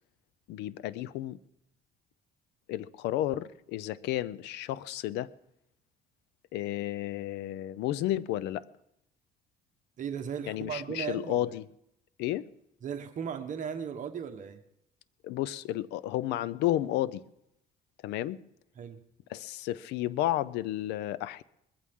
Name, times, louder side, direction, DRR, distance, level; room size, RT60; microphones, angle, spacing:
voice 1, 0.5-1.4 2.7-5.3 6.5-8.6 10.5-11.7 12.2-12.4 15.2-17.2 18.0-18.4 19.3-21.4, left 13 dB, 85° left, 0.6 m, -32 dB
voice 2, 10.0-11.5 12.8-14.6 18.8-19.0, right 7 dB, 50° right, 1.3 m, -36 dB
21.0 x 15.0 x 3.7 m
cardioid pair, 110°, 17 cm